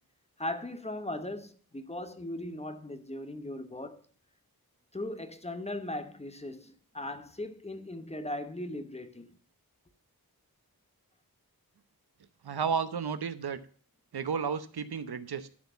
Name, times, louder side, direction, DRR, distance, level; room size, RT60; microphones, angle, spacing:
voice 1, 0.4-4.0 4.9-9.4, left 1 dB, 15° left, 0.9 m, -38 dB
voice 2, 12.4-13.6 14.1-15.5, right 6 dB, 90° right, 0.9 m, -32 dB
11.5 x 4.5 x 6.9 m
wide cardioid pair, 90°, 37 cm